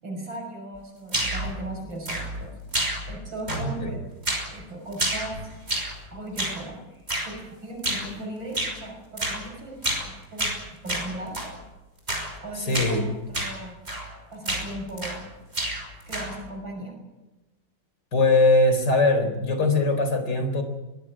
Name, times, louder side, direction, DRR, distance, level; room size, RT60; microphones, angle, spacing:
voice 1, 0.0-2.5 3.1-4.0 4.5-5.4 5.7-5.8 6.1-6.8 7.2-11.4 12.4-13.8 14.3-15.2 16.1-17.0, right 1 dB, 75° right, 1 dB, 6.9 m, -37 dB
sound 1, 1.1-1.5 2.0-2.5 2.7-3.2 3.5-3.9 4.2-4.5 4.9-6.0 6.4-6.6 7.1-7.3 7.8-8.1 8.5-8.8 9.2-9.4 9.8-10.1 10.4-11.5 12.1-12.3 12.7-13.0 13.3-13.6 13.9-14.1 14.4-15.3 15.5-16.4, right 1 dB, 30° right, 6.2 m, -29 dB
voice 2, 3.5-3.9 12.6-13.0 18.1-20.6, left 2 dB, 60° left, 8 dB, 4.5 m, -21 dB
22.5 x 16.5 x 9.8 m, 1.1 s
omnidirectional pair, 2.1 m